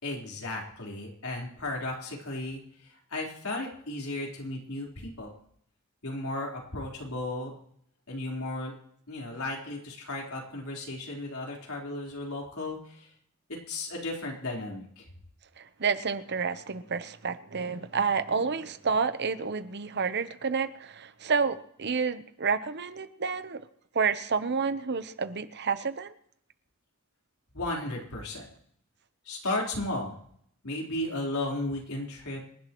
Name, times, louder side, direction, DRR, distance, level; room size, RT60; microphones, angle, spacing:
voice 1, 0.0-5.3 6.0-7.5 8.1-8.7 9.1-13.1 13.5-15.0 27.5-28.5 29.3-30.1 30.6-32.4, left 2 dB, 90° left, -2 dB, 4.1 m, -35 dB
voice 2, 15.6-23.7 23.9-26.1, right 5 dB, 55° right, 12 dB, 0.9 m, -29 dB
26.5 x 11.5 x 3.1 m, 0.67 s
head